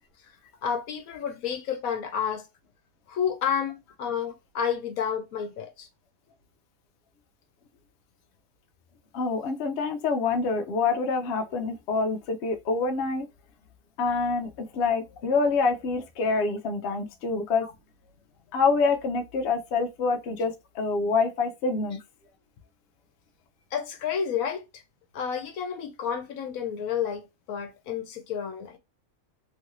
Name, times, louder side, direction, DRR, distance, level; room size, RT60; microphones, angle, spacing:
voice 1, 0.6-2.5 3.1-5.9 17.6-17.7 23.7-24.6 25.1-28.8, left 7 dB, 80° left, 1.1 m, -30 dB
voice 2, 9.1-13.3 14.0-17.7 18.5-22.0, left 4 dB, 60° left, 0.8 m, -26 dB
3.1 x 2.5 x 2.9 m
omnidirectional pair, 1.5 m